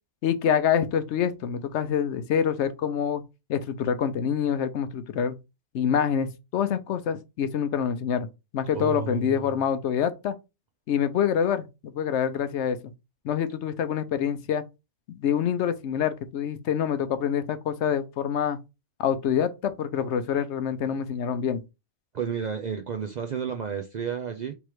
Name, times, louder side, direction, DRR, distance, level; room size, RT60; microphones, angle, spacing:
voice 1, 0.2-5.4 5.7-8.3 8.5-10.3 10.9-12.8 13.2-14.6 15.1-18.6 19.0-21.6, left 8 dB, 75° left, 0.9 m, -26 dB
voice 2, 8.7-9.6 22.1-24.5, right 7 dB, 55° right, 0.5 m, -32 dB
3.5 x 3.0 x 4.5 m
omnidirectional pair, 1.2 m